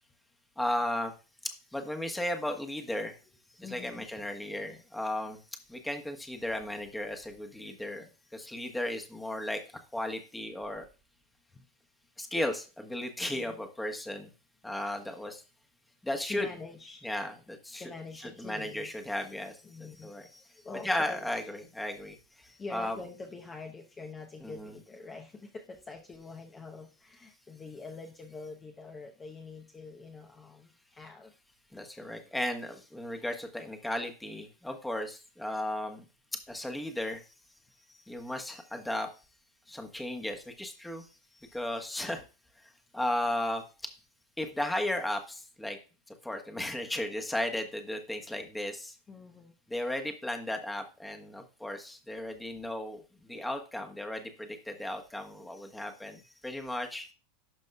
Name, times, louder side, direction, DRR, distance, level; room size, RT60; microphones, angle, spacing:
voice 1, 0.6-1.1 1.7-3.1 3.6-5.4 5.7-8.0 8.3-9.6 9.9-10.8 12.2-14.3 14.6-15.4 16.0-16.5 17.0-17.9 18.2-19.5 20.0-20.3 20.7-22.1 22.7-23.0 24.4-24.7 31.7-36.0 36.5-37.2 38.1-39.1 39.7-41.0 41.5-42.2 42.9-43.6 44.4-45.8 46.2-48.9 49.7-53.0 53.3-57.1, left 1 dB, 5° left, 4 dB, 1.3 m, -35 dB
voice 2, 3.6-4.2 11.5-11.6 13.2-13.6 16.3-17.1 17.7-18.9 19.6-21.3 22.6-31.3 33.1-33.2 49.1-49.5, left 3 dB, 25° left, 2 dB, 0.9 m, -45 dB
12.0 x 5.2 x 2.4 m, 0.32 s
hypercardioid pair, 95°, 0 cm